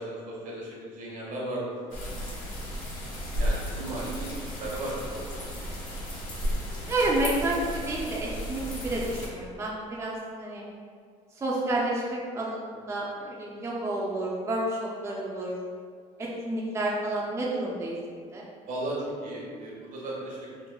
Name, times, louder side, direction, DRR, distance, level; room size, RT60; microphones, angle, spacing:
voice 1, 0.0-2.1 3.4-5.2 18.7-20.4, right 1 dB, 60° right, -5 dB, 0.8 m, -35 dB
sound 1, 1.9-9.3, equal, 65° left, 0.8 m, -34 dB
voice 2, 6.9-10.6 11.4-15.6 16.2-18.4, right 1 dB, 20° right, -4 dB, 0.4 m, -30 dB
3.0 x 2.0 x 2.2 m, 2.1 s
supercardioid pair, 80°, 15 cm